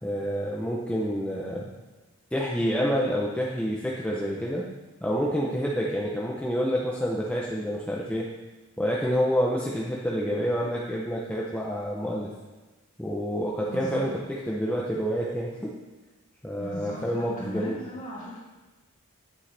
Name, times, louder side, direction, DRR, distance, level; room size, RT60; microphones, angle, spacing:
voice 1, 0.0-1.7 2.3-4.7 5.0-8.3 8.8-12.3 13.0-15.8 16.4-17.8, equal, 5° left, -4 dB, 0.6 m, -28 dB
voice 2, 13.7-14.1 16.6-18.4, equal, 35° left, -6 dB, 2.4 m, -37 dB
8.6 x 7.7 x 3.3 m, 1.2 s
head